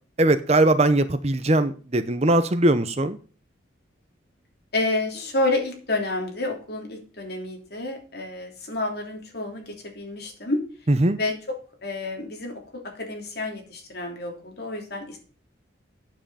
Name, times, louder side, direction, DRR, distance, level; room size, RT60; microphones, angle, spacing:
voice 1, 0.2-3.2 10.9-11.2, right 1 dB, 30° right, 11 dB, 0.7 m, -20 dB
voice 2, 4.7-10.6 11.2-11.3 11.8-12.5 12.9-15.2, left 2 dB, 55° left, 1 dB, 3.3 m, -29 dB
9.1 x 7.7 x 5.6 m, 0.38 s
head